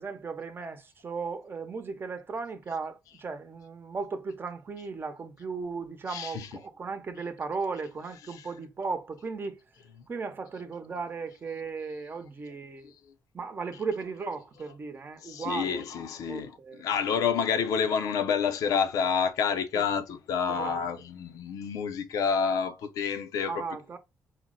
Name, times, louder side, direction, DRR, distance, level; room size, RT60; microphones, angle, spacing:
voice 1, 0.0-9.6 10.1-12.9 13.3-15.8 16.3-16.9 19.7-19.8 20.5-20.8 23.5-24.0, right 4 dB, 40° right, 0.8 m, -36 dB
voice 2, 6.1-6.5 8.3-8.5 12.8-12.9 15.2-23.7, left 6 dB, 80° left, 0.6 m, -29 dB
4.2 x 2.1 x 3.8 m
cardioid pair, 75°, 6 cm